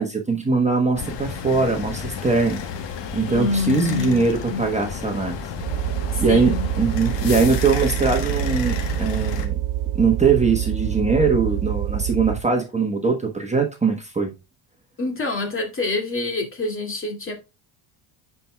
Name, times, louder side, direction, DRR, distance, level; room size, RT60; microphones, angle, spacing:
voice 1, 0.0-2.6 3.1-5.4 6.2-9.6 9.9-14.3, right 4 dB, 15° right, 1.3 m, -21 dB
sound 1, 1.0-9.5, left 6 dB, 65° left, 1.3 m, -32 dB
voice 2, 3.3-4.7 6.1-6.7 15.0-17.3, left 3 dB, 25° left, 2.5 m, -26 dB
sound 2, 5.6-12.5, right 12 dB, 80° right, 0.7 m, -26 dB
9.8 x 4.7 x 2.3 m
supercardioid pair, 90°, 47 cm